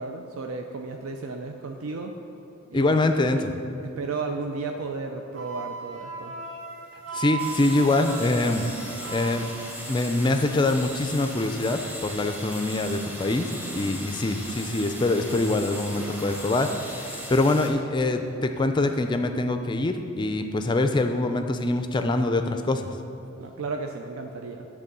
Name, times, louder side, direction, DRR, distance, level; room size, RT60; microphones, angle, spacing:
voice 1, 0.0-2.1 2.7-3.4 4.0-6.3 23.4-24.7, right 3 dB, 85° right, 4 dB, 0.5 m, -34 dB
voice 2, 2.7-3.5 7.1-9.5 9.9-22.9, left 2 dB, 20° left, 7 dB, 0.3 m, -24 dB
Wind instrument woodwind instrument, 5.3-9.5, right 5 dB, 65° right, 1.6 m, -37 dB
sound 1, 7.4-17.7, equal, 10° right, 0.8 m, -38 dB
9.9 x 3.6 x 6.7 m, 2.9 s
head